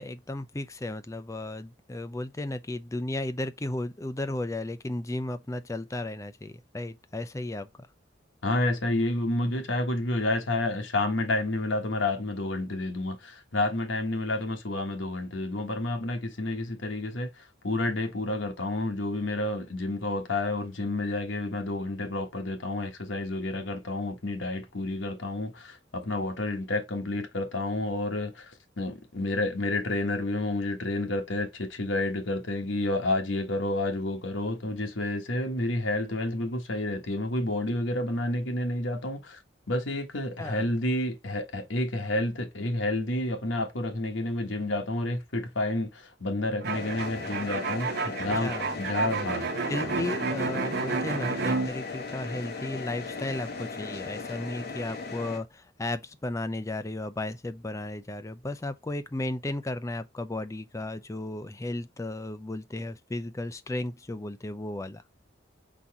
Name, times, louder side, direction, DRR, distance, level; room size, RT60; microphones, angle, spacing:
voice 1, 0.0-7.7 40.4-40.7 48.0-48.1 48.4-49.1 49.7-65.0, left 2 dB, 15° left, 0.4 m, -34 dB
voice 2, 8.4-39.4 39.7-49.5, left 2 dB, 80° left, 1.2 m, -30 dB
sound 1, 46.6-51.7, right 4 dB, 55° right, 0.7 m, -31 dB
sound 2, 46.7-55.4, left 4 dB, 55° left, 1.3 m, -37 dB
4.0 x 2.8 x 4.7 m
head